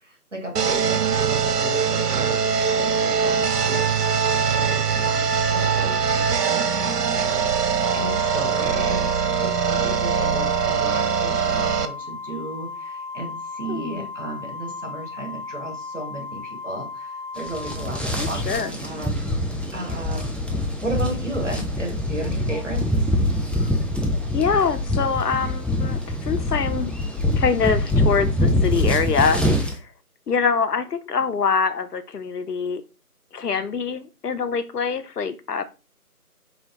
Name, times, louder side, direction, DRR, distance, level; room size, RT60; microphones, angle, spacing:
voice 1, 0.0-19.3 19.7-22.8, right 1 dB, 50° right, 2 dB, 1.0 m, -34 dB
sound 1, 0.5-11.8, right 6 dB, 80° right, 0.6 m, -22 dB
Organ, 7.8-18.6, left 4 dB, 40° left, 1.1 m, -36 dB
voice 2, 13.7-14.1 18.1-18.7 24.3-26.9 27.4-29.4 30.3-32.8 33.3-35.6, left 5 dB, 80° left, 11 dB, 0.6 m, -24 dB
sound 2, 17.4-29.8, left 1 dB, 5° left, 0.4 m, -24 dB
4.3 x 2.1 x 3.3 m, 0.30 s
figure-of-eight pair, 170°, 47 cm